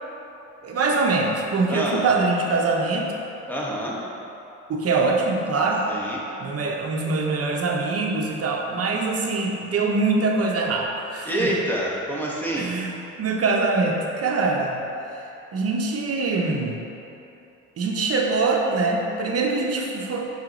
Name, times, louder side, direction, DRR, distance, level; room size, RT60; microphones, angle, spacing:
voice 1, 0.6-3.1 4.7-5.9 6.4-11.5 12.5-14.8 15.5-16.8 17.8-20.3, right 3 dB, 50° right, 0 dB, 0.8 m, -23 dB
voice 2, 1.7-2.0 3.5-4.1 5.9-6.2 11.3-12.7, right 1 dB, 5° left, -4 dB, 1.1 m, -27 dB
5.6 x 4.6 x 3.9 m, 2.9 s
cardioid pair, 90°, 30 cm